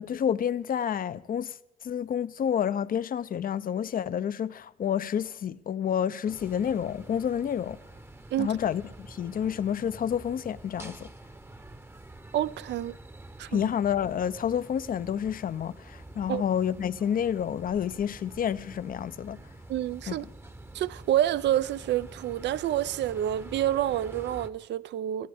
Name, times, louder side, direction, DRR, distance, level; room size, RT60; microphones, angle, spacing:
voice 1, 0.0-1.6 1.8-7.8 8.4-11.1 13.5-19.4 20.1-20.2, left 8 dB, 45° left, 0.5 m, -29 dB
sound 1, 6.3-24.5, right 1 dB, 10° right, 0.9 m, -47 dB
voice 2, 12.3-13.0 13.4-13.7 16.3-16.4 19.7-20.2 20.7-25.3, right 12 dB, 65° right, 0.5 m, -28 dB
21.0 x 15.0 x 3.5 m
cardioid pair, 90°, 20 cm